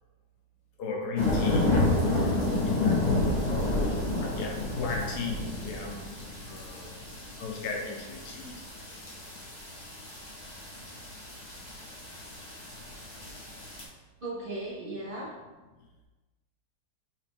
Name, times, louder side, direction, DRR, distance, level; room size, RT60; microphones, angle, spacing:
voice 1, 0.8-1.7 2.0-2.4 2.6-3.0 4.2-6.1 6.5-6.9 7.4-8.7, left 4 dB, 90° left, -1 dB, 1.3 m, -35 dB
sound 1, 1.2-13.8, left 2 dB, 30° left, 1.0 m, -30 dB
voice 2, 14.2-15.3, right 2 dB, 55° right, -5 dB, 0.6 m, -36 dB
5.9 x 2.4 x 3.4 m, 1.2 s
omnidirectional pair, 1.7 m